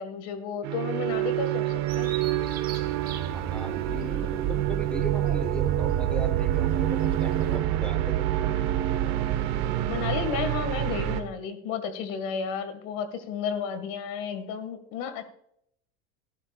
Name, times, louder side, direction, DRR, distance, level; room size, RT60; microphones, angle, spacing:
voice 1, 0.0-2.1 9.9-15.3, left 6 dB, 60° left, 9 dB, 2.0 m, -32 dB
sound 1, 0.6-11.2, right 12 dB, 50° right, 1.4 m, -27 dB
Bird vocalization bird call bird song, 1.9-7.6, right 8 dB, 25° right, 1.8 m, -45 dB
voice 2, 3.3-8.3, equal, 5° left, 8 dB, 1.4 m, -38 dB
15.5 x 11.5 x 2.4 m, 0.71 s
supercardioid pair, 140°, 33 cm